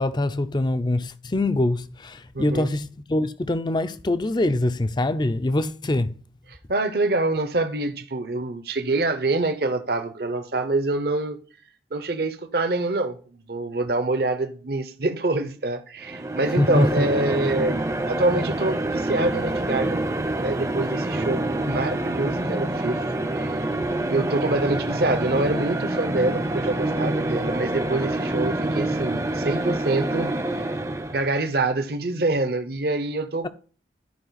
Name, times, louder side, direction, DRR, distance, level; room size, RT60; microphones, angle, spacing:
voice 1, 0.0-6.1 16.6-16.9, left 1 dB, 25° left, 0.5 m, -24 dB
voice 2, 2.3-2.7 6.7-11.4 11.9-13.2 13.5-20.0 20.3-23.0 23.3-23.5 24.1-30.3 31.1-33.5, right 2 dB, 60° right, 0.9 m, -25 dB
sound 1, 16.0-31.3, right 1 dB, 15° right, 0.6 m, -26 dB
12.5 x 4.9 x 4.0 m
head